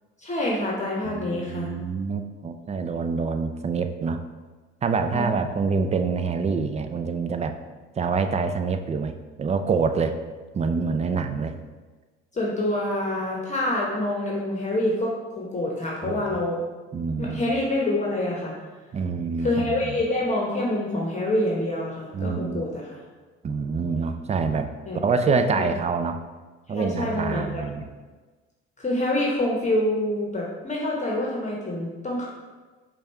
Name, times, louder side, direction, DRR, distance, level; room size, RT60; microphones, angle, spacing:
voice 1, 0.2-1.7 5.1-5.3 12.3-16.6 17.2-18.5 19.4-23.0 24.9-25.0 25.3-25.7 26.7-27.6 28.8-32.3, left 1 dB, 25° left, -3 dB, 1.0 m, -26 dB
voice 2, 1.0-4.2 4.8-7.5 8.0-9.1 9.4-10.2 10.5-11.6 16.0-16.4 16.9-17.5 18.9-19.9 22.1-22.6 23.4-24.7 25.0-26.2 26.7-27.9, right 5 dB, 25° right, 8 dB, 0.4 m, -26 dB
5.1 x 2.4 x 4.4 m, 1.3 s
hypercardioid pair, 70°, 29 cm